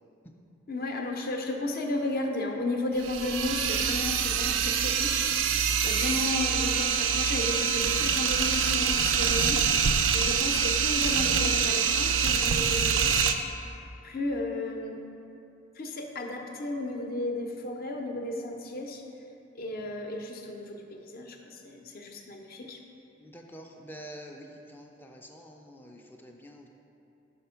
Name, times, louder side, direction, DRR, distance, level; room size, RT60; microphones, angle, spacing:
voice 1, 0.7-13.2 14.0-15.0 15.8-19.0 19.5-22.8, left 2 dB, 50° left, 3 dB, 0.6 m, -34 dB
sound 1, 3.0-13.3, right 6 dB, 90° right, 0.4 m, -25 dB
voice 2, 23.2-26.7, equal, 10° left, 1 dB, 0.4 m, -47 dB
5.7 x 4.3 x 5.6 m, 2.7 s
head